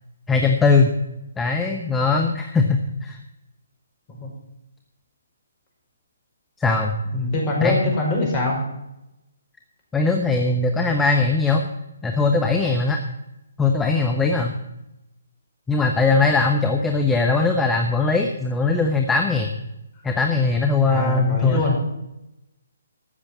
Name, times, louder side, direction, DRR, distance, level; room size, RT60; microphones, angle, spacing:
voice 1, 0.3-0.9 1.4-3.2 6.6-6.9 7.6-7.9 9.9-11.6 12.0-13.0 13.6-14.5 15.7-19.5 20.0-21.6, left 4 dB, 10° left, 3 dB, 1.0 m, -20 dB
voice 2, 7.1-8.6 20.9-21.8, left 1 dB, 25° left, -1 dB, 5.2 m, -23 dB
13.5 x 6.9 x 7.5 m, 0.88 s
figure-of-eight pair, 135°, 0 cm